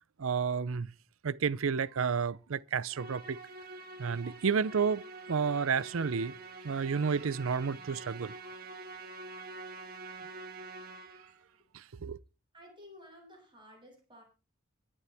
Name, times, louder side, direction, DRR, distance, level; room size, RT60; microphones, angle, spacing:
voice 1, 0.2-0.9 1.2-3.4 4.0-6.4 6.6-8.3 11.7-12.2, right 6 dB, 75° right, 0.5 m, -31 dB
Musical instrument, 2.9-11.4, right 3 dB, 45° right, 1.8 m, -46 dB
voice 2, 12.5-14.2, left 1 dB, 25° right, 7.8 m, -54 dB
24.0 x 8.6 x 3.5 m
head